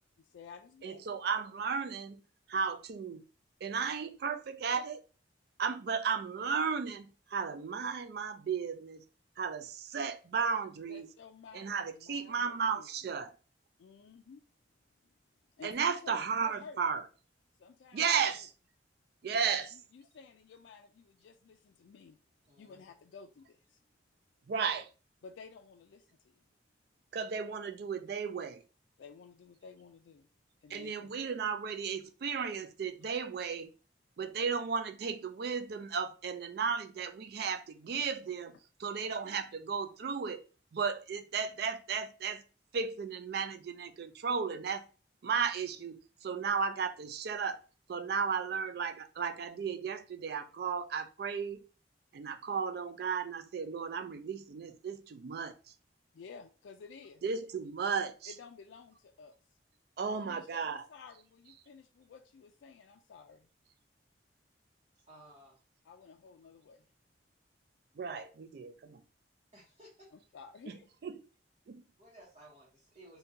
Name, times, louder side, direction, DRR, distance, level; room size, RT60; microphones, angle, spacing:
voice 1, 0.2-1.0 10.9-12.9 13.8-14.4 15.6-16.8 17.6-18.5 19.3-22.2 22.6-23.8 25.2-26.4 29.0-30.3 30.6-31.1 56.1-57.2 58.3-59.4 60.2-63.5 65.8-66.9 70.1-70.9, left 5 dB, 85° left, 0.3 m, -53 dB
voice 2, 0.8-2.2 2.5-3.2 3.6-5.0 5.6-9.0 9.4-11.1 11.5-13.3 15.6-17.0 17.9-18.5 19.2-19.7 24.5-24.9 27.1-28.6 30.7-33.7 34.2-38.5 38.8-40.4 40.7-42.4 42.7-44.9 45.2-47.6 47.9-51.6 52.1-55.7 57.2-58.3 60.0-60.8 68.0-69.0 70.7-71.2 71.7-71.9, right 6 dB, 60° right, 0.3 m, -34 dB
voice 3, 22.5-22.8 64.9-65.6 69.5-70.1 72.0-73.2, right 1 dB, 35° right, 0.9 m, -57 dB
3.7 x 2.2 x 2.7 m
head